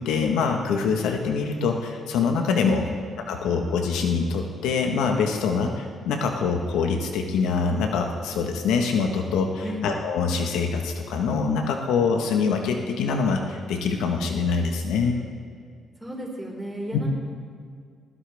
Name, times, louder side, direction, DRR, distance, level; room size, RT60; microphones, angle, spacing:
voice 1, 0.0-2.9 3.3-15.2, left 5 dB, 90° left, 3 dB, 1.3 m, -24 dB
voice 2, 16.0-17.1, equal, 5° right, -3 dB, 5.0 m, -34 dB
20.0 x 15.5 x 3.5 m, 2.2 s
cardioid pair, 90°, 0 cm